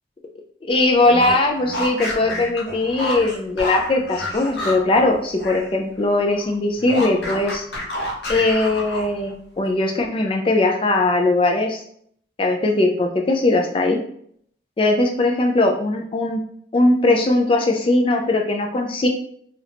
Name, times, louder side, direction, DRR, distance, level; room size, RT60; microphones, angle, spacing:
voice 1, 0.7-7.6 8.3-11.8 12.4-14.0 14.8-16.4 16.7-19.1, left 2 dB, 30° left, 2 dB, 0.3 m, -19 dB
sound 1, 1.0-5.7 6.0-9.3, left 1 dB, 80° left, 0.9 m, -30 dB
2.7 x 2.4 x 3.4 m, 0.65 s
head